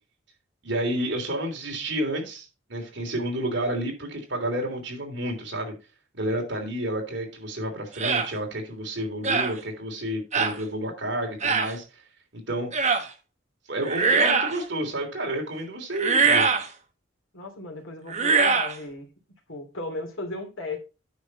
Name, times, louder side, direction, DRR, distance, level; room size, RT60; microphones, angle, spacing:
voice 1, 0.6-5.7 6.2-11.8 12.3-12.7 13.7-16.5, right 1 dB, 60° right, 3.3 m, -30 dB
sound 1, 8.0-8.3 9.2-9.5 10.3-10.6 11.4-11.7 12.7-13.1 13.8-14.6 15.9-16.7 18.1-18.7, right 4 dB, 35° right, 1.2 m, -22 dB
voice 2, 17.3-19.1 19.5-20.8, left 2 dB, 80° left, 2.8 m, -35 dB
9.4 x 6.3 x 4.1 m
head